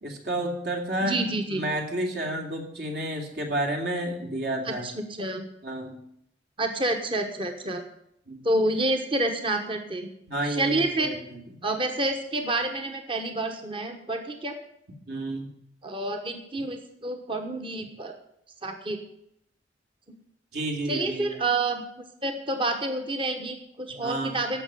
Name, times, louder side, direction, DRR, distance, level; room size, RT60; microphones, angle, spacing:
voice 1, 0.0-1.2 1.5-4.9 5.6-6.0 8.3-8.5 10.3-11.4 15.1-15.5 20.5-21.3 23.9-24.4, right 1 dB, 60° right, 2 dB, 2.7 m, -31 dB
voice 2, 1.0-1.6 4.7-5.4 6.6-7.8 8.4-10.1 10.5-11.2 11.6-14.6 15.8-18.1 18.6-19.0 20.9-21.8 22.2-24.6, right 2 dB, 30° right, 5 dB, 1.2 m, -28 dB
14.5 x 6.0 x 9.4 m, 0.75 s
head